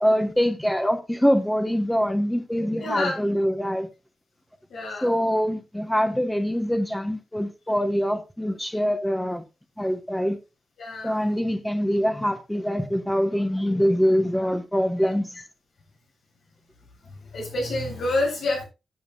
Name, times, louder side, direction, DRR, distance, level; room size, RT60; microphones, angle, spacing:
voice 1, 0.0-3.9 5.0-9.4 9.8-10.4 11.0-15.4, equal, 5° left, 1.0 m, -24 dB
voice 2, 2.8-3.4 4.7-5.2 10.8-11.2 17.2-18.6, left 2 dB, 85° left, 7.4 m, -28 dB
15.0 x 9.4 x 2.2 m
wide cardioid pair, 175°, 0 cm